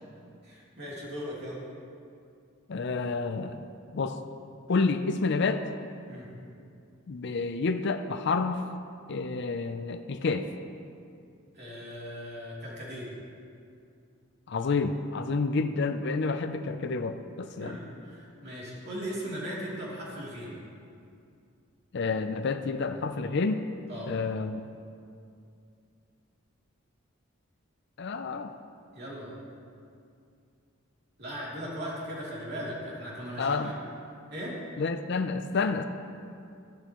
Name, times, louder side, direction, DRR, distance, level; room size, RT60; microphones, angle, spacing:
voice 1, 0.4-1.6 6.1-6.3 11.5-13.1 17.6-20.6 23.9-24.1 28.9-29.3 31.2-33.7 34.3-34.5, equal, 50° right, -6 dB, 3.0 m, -38 dB
voice 2, 2.7-3.6 3.9-4.2 4.7-5.6 7.1-8.6 9.1-10.5 14.5-17.8 21.9-23.6 24.1-24.6 28.0-28.5 33.4-33.7 34.8-35.8, left 4 dB, 55° left, 8 dB, 0.4 m, -29 dB
13.5 x 11.5 x 3.0 m, 2.4 s
head